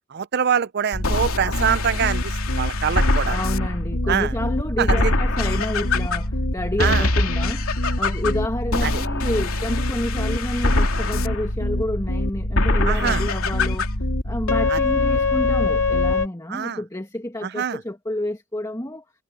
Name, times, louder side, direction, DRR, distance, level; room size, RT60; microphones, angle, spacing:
voice 1, 0.1-3.4 4.1-4.3 4.8-5.1 6.8-7.1 8.8-9.0 12.9-13.2 14.7-14.8 16.5-16.8 17.4-17.8, right 8 dB, 50° right, 0.5 m, -24 dB
sound 1, 0.9-16.3, left 2 dB, 70° left, 3.1 m, -22 dB
voice 2, 3.2-7.7 8.0-19.0, left 1 dB, 15° left, 1.9 m, -29 dB
head